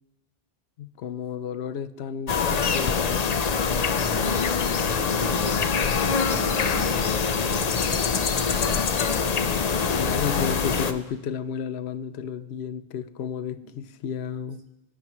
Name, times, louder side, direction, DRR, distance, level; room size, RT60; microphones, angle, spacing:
voice 1, 0.8-3.3 9.7-14.6, left 7 dB, 85° left, 0.9 m, -33 dB
sound 1, 2.3-10.9, left 5 dB, 45° left, 0.7 m, -24 dB
voice 2, 4.0-4.7 5.2-7.9 13.4-13.7, right 3 dB, 75° right, 1.7 m, -41 dB
22.0 x 10.5 x 3.0 m
omnidirectional pair, 1.1 m